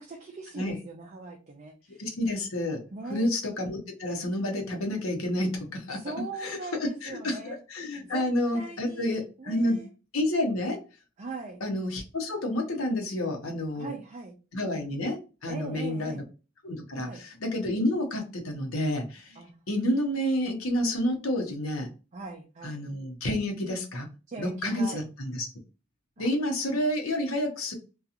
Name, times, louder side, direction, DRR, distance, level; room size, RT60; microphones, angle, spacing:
voice 1, 0.0-2.0 2.9-3.3 5.9-7.6 8.0-8.3 8.5-9.9 11.2-11.6 13.7-14.3 15.5-16.3 17.0-17.2 19.4-19.7 22.1-22.8 24.3-25.0 26.2-26.3, right 3 dB, 35° right, 2 dB, 0.4 m, -40 dB
voice 2, 2.0-2.8 3.1-6.1 6.4-6.6 7.0-9.8 10.1-10.8 11.6-13.9 14.5-16.2 16.6-21.9 22.6-24.1 24.4-25.5 26.2-27.7, left 1 dB, 80° left, 3 dB, 0.8 m, -29 dB
2.8 x 2.3 x 2.4 m, 0.32 s
head